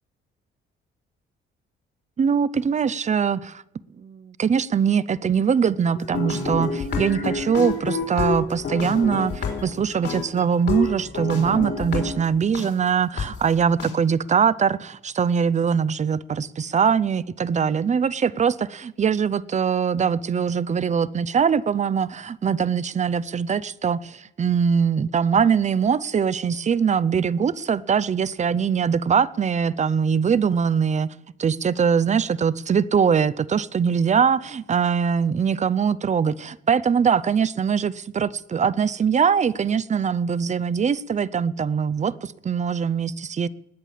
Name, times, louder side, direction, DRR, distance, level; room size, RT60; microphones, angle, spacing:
voice 1, 2.2-3.6 4.0-31.1 31.4-43.5, right 6 dB, 35° right, 0.7 m, -22 dB
sound 1, 6.0-12.7 13.2-13.3 13.8-13.9, left 4 dB, 60° left, 4.4 m, -28 dB
19.5 x 8.8 x 7.5 m
cardioid pair, 90°, 20 cm